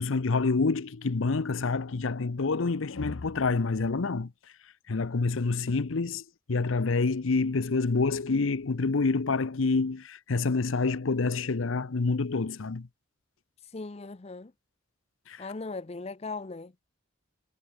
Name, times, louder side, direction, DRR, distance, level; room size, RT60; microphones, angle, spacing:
voice 1, 0.0-4.3 4.9-12.9 15.3-15.5, left 3 dB, 85° left, 0.7 m, -27 dB
voice 2, 13.7-14.5 15.4-16.8, left 3 dB, 30° left, 0.6 m, -38 dB
head